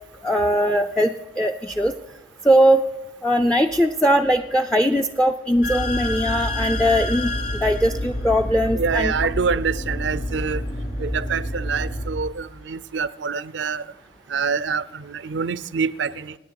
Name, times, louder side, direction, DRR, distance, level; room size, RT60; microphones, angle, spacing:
voice 1, 0.2-1.9 2.4-2.8 3.2-7.3 7.6-9.1, equal, 5° left, 0.4 m, -20 dB
sound 1, 5.6-12.0, left 1 dB, 60° left, 5.8 m, -28 dB
voice 2, 8.7-10.6 11.0-13.8 14.3-16.3, right 5 dB, 85° right, 0.6 m, -26 dB
26.0 x 9.8 x 4.7 m
head